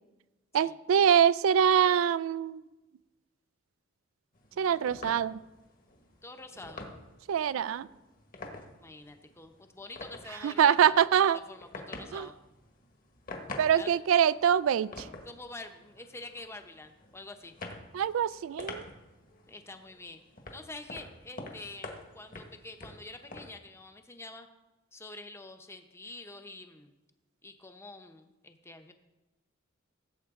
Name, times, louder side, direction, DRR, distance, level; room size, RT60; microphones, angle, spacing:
voice 1, 0.5-2.6 4.6-5.4 7.3-7.9 10.4-11.4 12.1-12.3 13.6-15.1 17.9-18.8, right 8 dB, 85° right, 18 dB, 0.3 m, -24 dB
sound 1, 4.3-23.5, left 2 dB, 45° left, 1.6 m, -48 dB
voice 2, 4.5-4.9 6.2-6.9 8.6-12.4 13.7-14.0 15.2-17.5 19.5-20.2 20.5-24.5 24.9-26.9 27.4-28.9, left 2 dB, 15° left, 7 dB, 0.8 m, -47 dB
16.0 x 7.8 x 3.7 m, 1.1 s
head